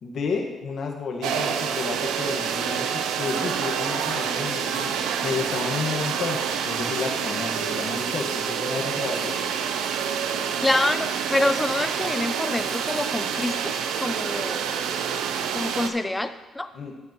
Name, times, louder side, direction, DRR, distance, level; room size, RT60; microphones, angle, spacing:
voice 1, 0.0-9.4 16.7-16.9, left 4 dB, 60° left, 2 dB, 1.5 m, -31 dB
sound 1, 1.2-15.9, right 7 dB, 90° right, 0.6 m, -27 dB
sound 2, 7.4-14.3, right 1 dB, 15° right, 1.7 m, -48 dB
voice 2, 10.6-14.7 15.5-16.7, left 2 dB, 10° left, 9 dB, 0.5 m, -26 dB
12.5 x 7.3 x 3.0 m, 1.1 s
cardioid pair, 100°, 0 cm